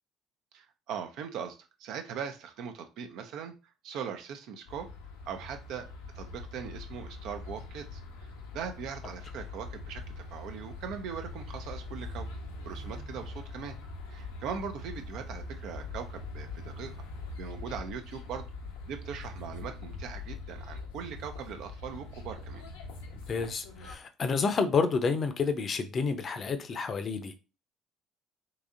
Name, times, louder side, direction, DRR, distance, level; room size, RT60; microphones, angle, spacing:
voice 1, 0.5-3.5 3.8-4.9 5.3-5.9 6.2-8.0 8.5-10.0 10.3-12.3 12.6-13.8 14.1-16.9 17.3-18.4 18.9-22.6, right 7 dB, 65° right, 0.5 m, -40 dB
sound 1, 4.7-24.0, left 3 dB, 85° left, 0.7 m, -42 dB
voice 2, 23.3-27.4, left 5 dB, 45° left, 0.6 m, -29 dB
3.9 x 2.7 x 2.5 m
hypercardioid pair, 55°, 0 cm